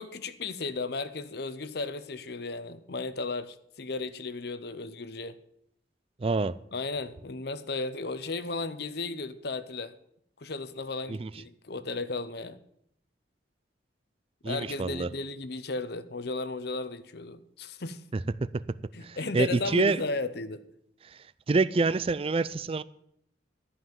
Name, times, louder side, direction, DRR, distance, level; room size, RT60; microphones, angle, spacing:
voice 1, 0.0-5.4 6.7-9.9 10.4-12.6 14.4-18.0 18.9-20.6, left 3 dB, 55° left, 0.8 m, -35 dB
voice 2, 6.2-6.6 11.1-11.3 14.4-15.1 19.0-20.0 21.1-21.2 21.5-22.8, right 3 dB, 30° right, 0.4 m, -26 dB
13.0 x 5.6 x 9.3 m
head